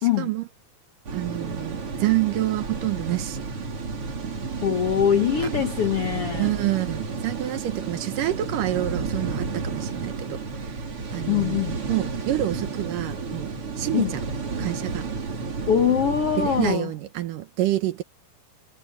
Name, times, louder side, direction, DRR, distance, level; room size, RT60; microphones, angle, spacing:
voice 1, 0.0-0.3 4.6-6.6 11.3-11.8 13.9-14.1 15.7-16.9, left 9 dB, 65° left, 1.5 m, -23 dB
sound 1, 1.1-16.8, right 4 dB, 40° right, 3.6 m, -32 dB
voice 2, 1.1-3.4 5.4-5.5 6.3-10.4 11.1-11.6 11.9-14.2 14.6-15.1 16.4-18.0, right 15 dB, 70° right, 2.4 m, -27 dB
omnidirectional pair, 4.3 m